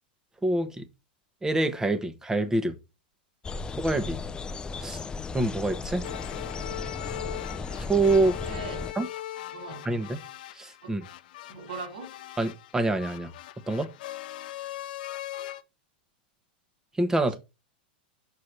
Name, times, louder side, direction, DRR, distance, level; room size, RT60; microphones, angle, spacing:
voice 1, 0.4-0.8 1.4-2.7 3.8-4.2 4.8-5.0 5.3-6.0 7.8-8.4 9.0-9.1 9.8-10.2 10.6-11.0 12.4-13.3 13.7-13.9 17.0-17.4, right 2 dB, 10° right, 1.2 m, -26 dB
sound 1, 3.4-8.9, left 4 dB, 15° left, 0.6 m, -36 dB
sound 2, 6.0-15.6, left 13 dB, 65° left, 0.7 m, -40 dB
voice 2, 8.4-8.9 9.5-9.9 10.8-11.0 11.5-12.2 17.3-17.4, right 3 dB, 75° right, 4.1 m, -40 dB
6.7 x 4.7 x 5.8 m
hypercardioid pair, 105°, 5 cm